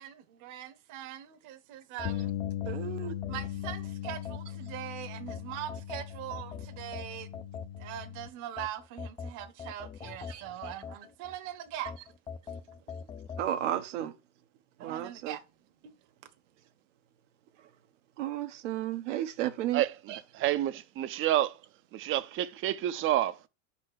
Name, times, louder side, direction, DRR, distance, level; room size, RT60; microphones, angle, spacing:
voice 1, 0.0-2.4 3.3-7.5 7.8-11.9 14.8-15.4 15.8-15.9, right 11 dB, 55° right, 1.1 m, -41 dB
Bass guitar, 2.0-8.3, left 11 dB, 50° left, 0.7 m, -38 dB
sound 1, 2.0-4.8 5.3-8.1 8.6-11.4 11.9-13.5, left 6 dB, 15° left, 0.4 m, -43 dB
voice 2, 2.6-3.1 10.3-10.5 13.4-14.1 14.8-15.4 18.2-19.8 20.1-20.2, right 12 dB, 85° right, 1.1 m, -33 dB
voice 3, 19.7-21.6 21.9-23.4, right 13 dB, 35° right, 0.6 m, -29 dB
5.5 x 4.3 x 6.1 m
supercardioid pair, 120°, 36 cm